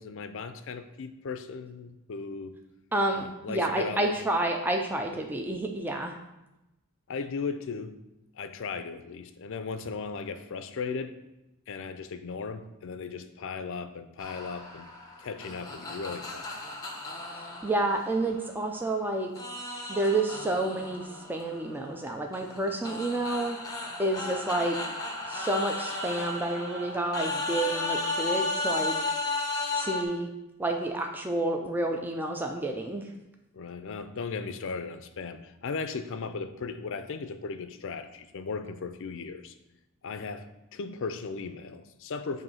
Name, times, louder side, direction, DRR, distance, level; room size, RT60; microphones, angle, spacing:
voice 1, 0.0-2.6 3.1-4.1 5.1-5.3 7.1-8.0 8.3-11.1 11.7-14.9 15.2-16.6 33.5-39.6 40.0-42.4, left 4 dB, 60° left, 10 dB, 0.4 m, -37 dB
voice 2, 2.9-6.2 17.6-19.3 19.9-23.6 24.0-24.8 25.3-28.9 29.7-30.3 30.6-33.1, right 2 dB, 10° right, 2 dB, 0.4 m, -29 dB
sound 1, 14.2-18.9 19.4-30.0, left 2 dB, 15° left, 1.0 m, -34 dB
7.8 x 2.6 x 5.5 m, 0.95 s
head